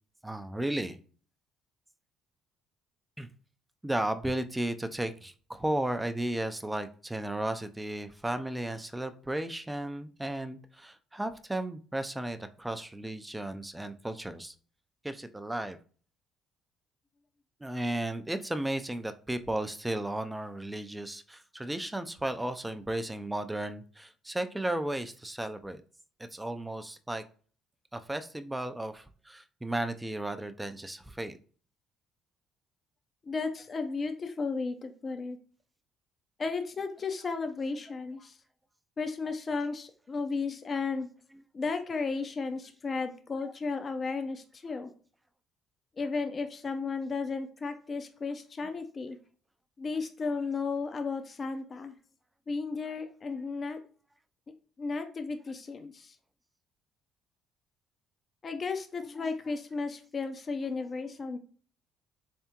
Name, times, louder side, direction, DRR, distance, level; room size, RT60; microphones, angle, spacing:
voice 1, 0.2-1.0 3.2-3.3 3.8-14.5 15.0-15.8 17.6-25.8 26.3-27.2 27.9-31.4, right 1 dB, 10° right, 9 dB, 0.4 m, -34 dB
voice 2, 33.2-35.4 36.4-38.4 39.0-41.1 41.5-44.9 46.0-49.2 49.8-51.9 52.5-53.8 54.8-56.2 58.4-61.4, left 4 dB, 35° left, 7 dB, 0.5 m, -34 dB
3.5 x 3.4 x 2.9 m, 0.41 s
supercardioid pair, 80°, 0 cm